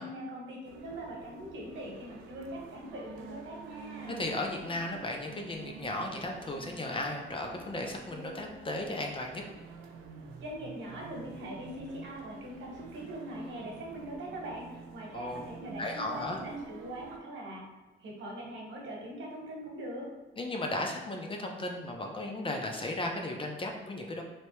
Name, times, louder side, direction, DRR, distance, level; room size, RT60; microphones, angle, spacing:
voice 1, 0.0-4.2 10.4-17.6 18.0-20.1, right 1 dB, 70° right, -1 dB, 1.0 m, -42 dB
sound 1, 0.7-17.2, right 5 dB, 90° right, 0.5 m, -48 dB
voice 2, 4.2-9.4 15.1-15.4 15.8-16.4 20.4-24.2, left 2 dB, 25° left, 2 dB, 0.5 m, -35 dB
3.2 x 2.8 x 3.0 m, 1.2 s
cardioid pair, 90°, 20 cm